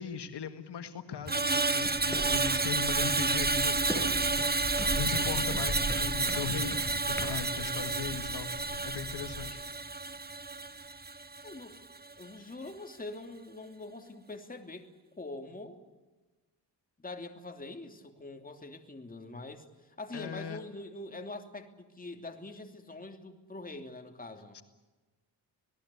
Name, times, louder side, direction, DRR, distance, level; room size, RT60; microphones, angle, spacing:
voice 1, 0.0-4.1 4.7-9.6 20.1-20.6 24.5-24.6, left 6 dB, 75° left, 8 dB, 1.9 m, -39 dB
Screech, 1.3-11.6 11.9-12.2, right 3 dB, 25° right, 1.3 m, -30 dB
sound 1, 1.8-7.4, equal, 5° left, 6.3 m, -39 dB
sound 2, 2.3-9.5, left 4 dB, 60° left, 3.3 m, -45 dB
voice 2, 5.0-5.5 11.4-11.8 12.2-14.9 15.2-15.8 17.0-24.6, left 2 dB, 20° left, 5 dB, 3.0 m, -44 dB
27.0 x 19.0 x 8.4 m, 1.2 s
cardioid pair, 105°, 41 cm